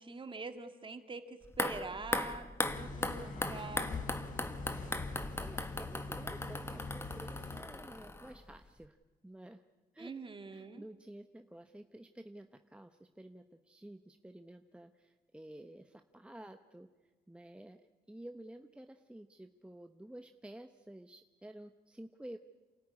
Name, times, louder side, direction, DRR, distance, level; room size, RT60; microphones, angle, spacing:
voice 1, 0.0-4.0 10.0-10.8, right 4 dB, 30° right, 8 dB, 2.2 m, -44 dB
sound 1, 1.4-8.6 8.8-8.9, left 2 dB, 15° left, 1.5 m, -39 dB
sound 2, 2.6-7.6, left 3 dB, 55° left, 4.2 m, -43 dB
voice 2, 3.2-3.6 5.4-9.0 9.2-9.6 9.9-10.1 10.5-16.9 17.3-22.4, right 1 dB, 5° right, 7 dB, 0.9 m, -51 dB
28.0 x 13.5 x 9.8 m, 1.3 s
cardioid pair, 85°, 16 cm